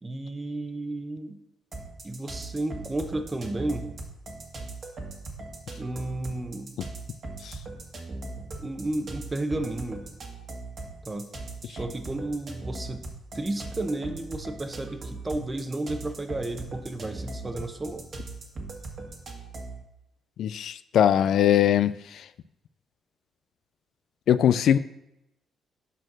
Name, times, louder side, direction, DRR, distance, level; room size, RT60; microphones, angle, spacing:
voice 1, 0.0-1.4 2.0-3.9 5.8-6.7 8.6-10.1 11.1-11.3 11.6-13.1 13.3-18.0, right 2 dB, 20° right, 8 dB, 0.9 m, -32 dB
sound 1, 1.7-19.8, right 2 dB, 45° right, 1.6 m, -39 dB
voice 2, 20.4-21.9 24.3-24.8, left 10 dB, 70° left, 14 dB, 0.3 m, -21 dB
8.8 x 4.4 x 6.1 m, 0.88 s
cardioid pair, 90°, 0 cm